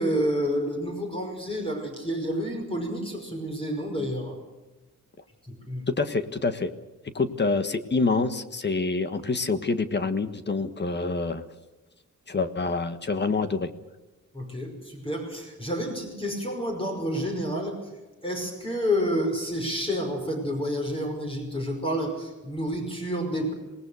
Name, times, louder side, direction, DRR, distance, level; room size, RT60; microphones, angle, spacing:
voice 1, 0.0-4.4 5.5-5.8 14.3-17.8 18.2-23.5, equal, 20° left, 2 dB, 5.5 m, -29 dB
voice 2, 6.0-6.7 7.1-11.4 12.3-13.7, left 3 dB, 35° left, 9 dB, 1.6 m, -26 dB
27.0 x 19.5 x 6.5 m, 1.1 s
wide cardioid pair, 165°, 31 cm